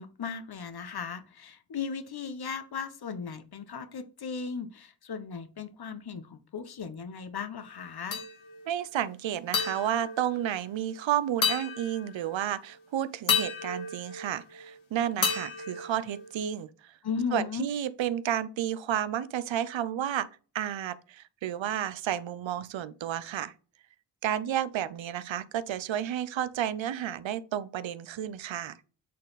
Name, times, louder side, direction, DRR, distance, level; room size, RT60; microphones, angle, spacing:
voice 1, 0.0-8.2 17.0-17.7, left 6 dB, 55° left, 1.2 m, -36 dB
sound 1, 8.1-8.7 9.5-11.0 11.4-12.4 13.3-14.8 15.2-16.6, left 6 dB, 80° left, 2.0 m, -32 dB
voice 2, 8.7-16.9 17.3-20.3 20.5-23.5 24.2-28.8, right 10 dB, 75° right, 0.7 m, -31 dB
8.4 x 4.1 x 4.1 m
cardioid pair, 55°, 46 cm